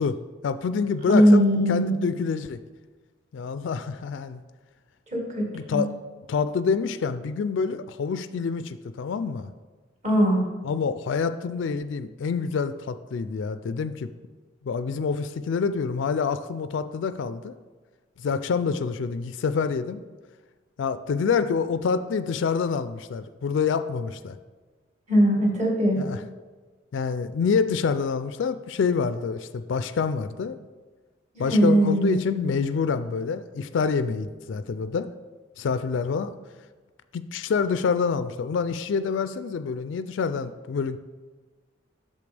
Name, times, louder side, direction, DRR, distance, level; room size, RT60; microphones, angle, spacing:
voice 1, 0.0-1.4 1.7-2.6 3.3-4.4 5.5-5.9 6.3-9.5 10.6-14.1 14.6-17.5 18.2-20.0 20.8-24.4 26.0-26.2 26.9-30.6 31.4-35.1 35.6-36.3 37.1-41.0, left 5 dB, 70° left, 12 dB, 0.3 m, -27 dB
voice 2, 1.0-1.9 5.1-5.8 10.0-10.4 25.1-26.0 31.3-32.5, equal, 35° right, -1 dB, 1.8 m, -20 dB
8.4 x 6.5 x 3.4 m, 1.3 s
head